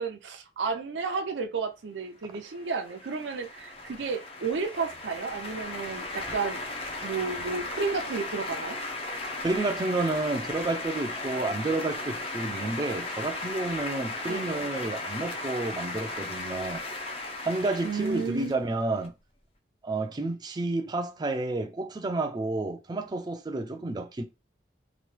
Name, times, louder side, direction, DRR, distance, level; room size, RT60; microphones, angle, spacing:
voice 1, 0.0-6.6 7.0-8.8 14.3-14.7 17.8-18.6, right 4 dB, 85° right, 0.5 m, -32 dB
sound 1, 2.4-19.1, left 2 dB, 35° left, 0.5 m, -36 dB
voice 2, 9.4-16.8 17.4-19.2 19.8-24.2, right 2 dB, 25° right, 0.4 m, -30 dB
3.0 x 2.2 x 3.1 m
head